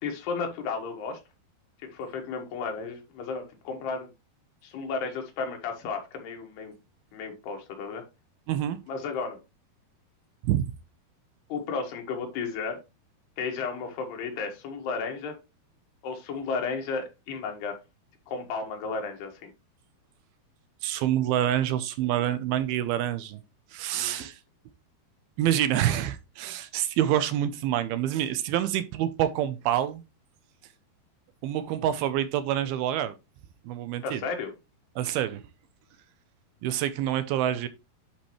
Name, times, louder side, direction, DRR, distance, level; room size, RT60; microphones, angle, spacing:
voice 1, 0.0-1.2 1.8-4.1 4.6-6.7 7.1-8.0 8.9-9.4 11.5-12.8 13.4-15.3 16.0-17.8 18.3-19.5 23.9-24.3 34.0-34.5, left 5 dB, 90° left, 3.7 m, -33 dB
voice 2, 8.5-8.8 10.4-10.7 20.8-23.4 23.7-24.4 25.4-30.0 31.4-33.1 33.7-34.2 35.0-35.4 36.6-37.7, right 11 dB, 80° right, 2.4 m, -27 dB
10.0 x 5.3 x 3.1 m
omnidirectional pair, 4.6 m